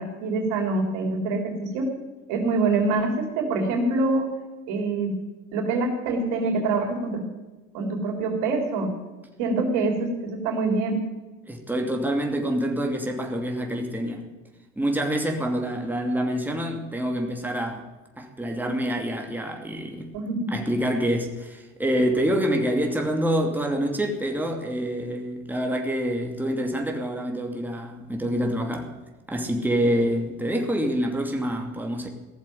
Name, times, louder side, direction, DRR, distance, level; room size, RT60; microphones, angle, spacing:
voice 1, 0.0-1.9 2.3-4.3 4.7-5.1 5.5-7.2 7.7-8.9 9.4-11.0 20.1-20.6, right 3 dB, 80° right, 2 dB, 3.7 m, -25 dB
voice 2, 11.5-14.2 14.8-17.9 18.2-20.1 20.5-28.9 29.3-32.1, equal, 5° right, 2 dB, 2.6 m, -26 dB
16.0 x 7.4 x 9.3 m, 1.2 s
supercardioid pair, 90°, 31 cm